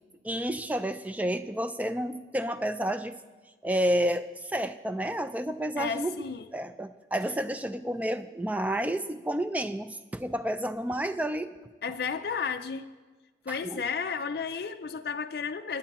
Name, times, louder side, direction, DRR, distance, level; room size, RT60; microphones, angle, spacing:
voice 1, 0.2-3.2 3.6-6.1 6.5-11.5 13.5-13.8, equal, 10° right, 11 dB, 0.3 m, -30 dB
voice 2, 5.8-6.5 11.8-12.9 13.5-15.8, left 6 dB, 60° left, 6 dB, 0.4 m, -33 dB
21.0 x 8.7 x 3.0 m, 1.3 s
head